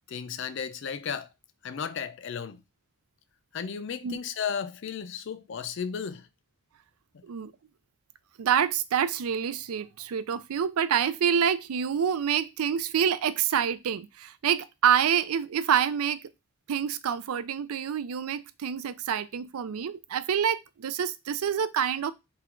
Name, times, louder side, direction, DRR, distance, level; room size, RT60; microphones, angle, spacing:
voice 1, 0.1-1.3 1.6-2.6 3.5-6.3 7.1-7.3, left 7 dB, 55° left, 0.4 m, -34 dB
voice 2, 8.4-16.2 16.7-22.1, right 8 dB, 90° right, 0.4 m, -27 dB
4.0 x 2.3 x 4.3 m
head